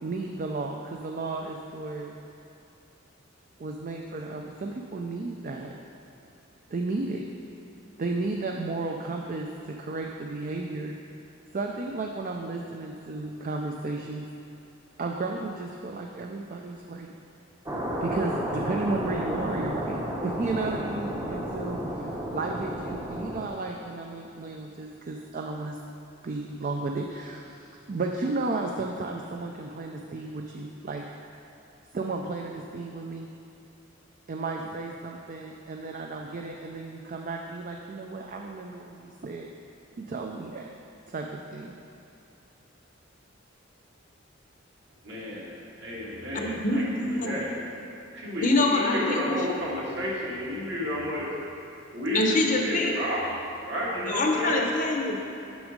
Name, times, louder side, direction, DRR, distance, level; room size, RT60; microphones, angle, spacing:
voice 1, 0.0-2.1 3.6-5.7 6.7-7.3 8.0-10.9 11.5-14.2 15.0-17.1 18.0-25.8 26.2-31.0 31.9-33.3 34.3-39.5 40.0-40.7 41.1-41.7, right 3 dB, 40° right, 1 dB, 0.4 m, -33 dB
sound 1, 17.7-23.5, equal, 20° right, 0.7 m, -32 dB
voice 2, 45.0-45.5 45.8-46.8 47.1-47.5 48.1-51.3 51.9-53.2 53.7-54.7, left 1 dB, 60° right, -6 dB, 1.8 m, -31 dB
voice 3, 46.3-47.4 48.4-49.4 52.1-53.0 54.1-55.2, left 2 dB, 40° left, 2 dB, 0.7 m, -25 dB
6.2 x 6.1 x 5.1 m, 2.8 s
head